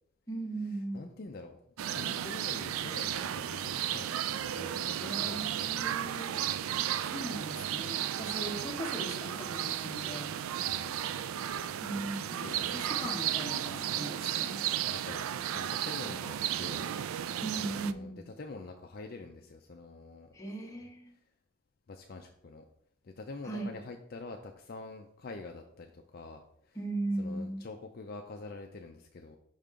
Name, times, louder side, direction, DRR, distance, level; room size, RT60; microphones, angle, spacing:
voice 1, 0.3-1.1 5.0-6.4 7.0-10.4 11.8-14.6 17.4-18.2 20.3-21.1 23.4-23.7 26.7-27.6, right 2 dB, 15° left, -1 dB, 1.2 m, -38 dB
voice 2, 0.9-1.6 1.9-5.8 8.5-8.7 10.7-11.0 12.2-12.9 14.0-14.6 14.9-16.9 17.6-20.4 20.7-20.9 21.9-22.7 23.0-26.8 27.2-29.4, left 3 dB, 45° left, 4 dB, 0.4 m, -46 dB
sound 1, 1.8-17.9, right 10 dB, 80° right, 0.3 m, -34 dB
5.6 x 5.3 x 3.7 m, 0.68 s
head